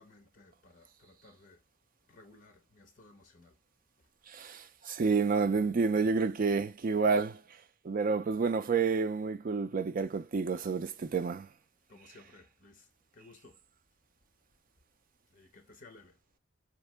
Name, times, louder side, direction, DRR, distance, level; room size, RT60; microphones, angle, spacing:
voice 1, 0.0-1.6 2.1-3.6 11.9-13.6 15.3-16.2, left 3 dB, 40° left, 1.0 m, -58 dB
voice 2, 4.3-7.4 7.8-11.5, right 4 dB, 40° right, 0.3 m, -29 dB
4.4 x 2.9 x 3.3 m
head